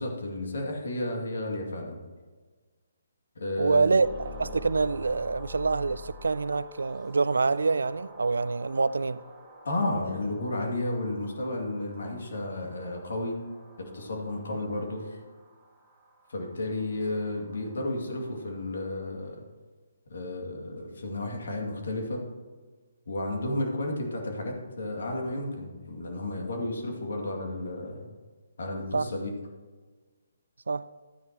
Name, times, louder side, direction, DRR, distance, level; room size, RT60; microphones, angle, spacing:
voice 1, 0.0-2.0 3.4-3.9 9.6-13.4 13.8-15.2 16.3-19.4 20.1-22.3 23.1-28.1 28.6-29.3, left 1 dB, 65° left, 2.4 m, -32 dB
voice 2, 3.6-9.2 28.9-29.1 30.7-30.8, right 4 dB, 75° right, 0.3 m, -26 dB
sound 1, 4.0-19.1, left 2 dB, ahead, 2.1 m, -49 dB
12.5 x 9.5 x 3.0 m
figure-of-eight pair, 145°, 0 cm